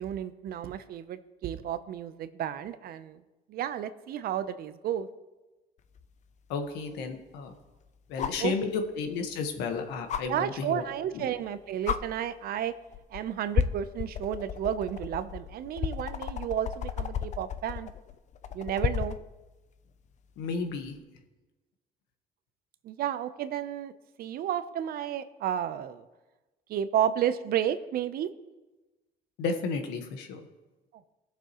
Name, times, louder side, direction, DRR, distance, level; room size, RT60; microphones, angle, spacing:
voice 1, 0.0-3.2 3.5-5.1 8.4-8.5 10.3-12.7 13.1-17.9 18.5-19.2 22.8-23.9 24.2-26.0 26.7-28.3, right 10 dB, 65° right, 12 dB, 0.7 m, -32 dB
sound 1, 6.0-6.1 8.2-8.5 10.1-10.2 11.4-11.5 11.8-12.0 12.9-13.2 13.5-19.2 20.9-21.0, left 8 dB, 45° left, 0.5 m, -32 dB
voice 2, 6.5-7.5 8.1-10.8 11.1-11.2 20.4-20.9 29.4-30.4, left 4 dB, 90° left, 5 dB, 1.4 m, -32 dB
19.0 x 6.9 x 3.0 m, 1.1 s
cardioid pair, 110°, 17 cm